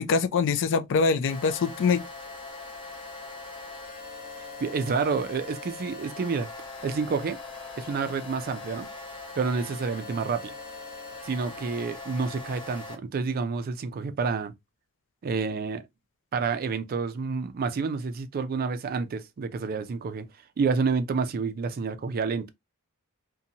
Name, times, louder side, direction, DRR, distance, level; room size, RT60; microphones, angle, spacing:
voice 1, 0.0-2.0, left 5 dB, 55° left, 0.3 m, -24 dB
sound 1, 1.3-12.9, left 3 dB, 25° left, 0.8 m, -41 dB
voice 2, 4.6-6.5 6.8-7.4 7.8-8.9 9.4-10.5 11.2-14.5 15.2-15.8 16.3-20.3 20.6-22.5, right 5 dB, 40° right, 0.3 m, -29 dB
2.6 x 2.2 x 2.7 m
head